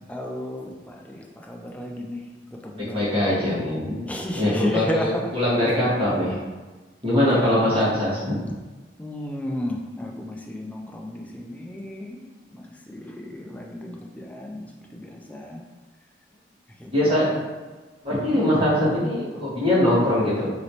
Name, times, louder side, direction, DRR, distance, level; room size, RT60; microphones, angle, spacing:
voice 1, 0.1-2.2 2.6-3.1 4.1-5.3 7.2-7.8 9.0-12.2 12.5-12.7 12.9-14.7 14.9-15.6 16.8-16.9 17.2-17.3 18.7-18.8, left 1 dB, 5° left, 0 dB, 0.3 m, -33 dB
voice 2, 2.9-4.0 4.3-6.3 7.0-8.4 16.9-17.4 18.0-20.5, left 1 dB, 30° right, -11 dB, 1.4 m, -22 dB
3.1 x 3.0 x 2.8 m, 1.3 s
head